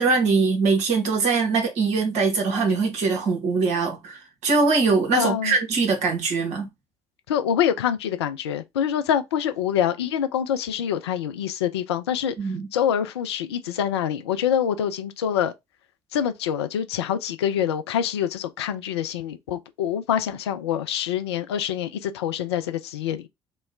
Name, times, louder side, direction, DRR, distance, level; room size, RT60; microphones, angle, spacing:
voice 1, 0.0-6.7 12.4-12.7, right 4 dB, 55° right, 1.1 m, -22 dB
voice 2, 5.1-5.6 7.3-15.5 16.1-23.3, left 9 dB, 75° left, 0.4 m, -25 dB
3.0 x 2.1 x 3.5 m
figure-of-eight pair, 50°, 14 cm